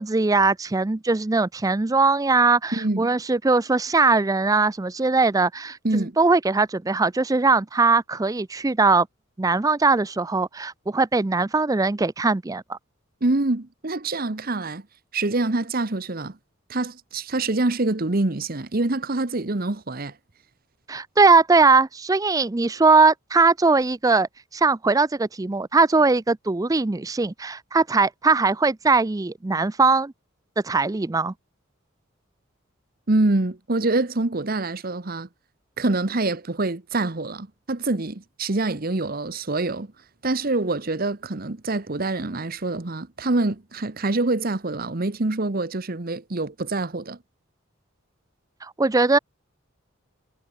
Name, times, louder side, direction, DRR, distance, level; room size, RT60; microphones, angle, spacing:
voice 1, 0.0-9.1 9.4-12.8 20.9-30.1 30.6-31.3 48.6-49.2, right 3 dB, 15° right, 0.4 m, -20 dB
voice 2, 2.7-3.1 5.8-6.2 13.2-14.8 15.1-16.4 16.7-20.1 33.1-35.3 35.8-39.9 40.2-47.2, right 2 dB, 45° right, 1.1 m, -25 dB
head